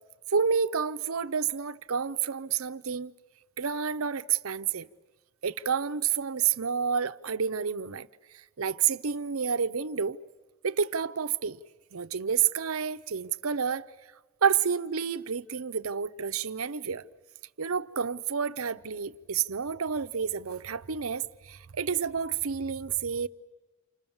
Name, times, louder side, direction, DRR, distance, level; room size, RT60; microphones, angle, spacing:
voice 1, 0.3-3.1 3.6-4.9 5.4-8.1 8.3-10.2 10.6-11.6 11.9-13.8 14.4-17.0 17.6-23.3, right 6 dB, 80° right, 0.8 m, -29 dB
29.0 x 27.0 x 7.2 m
head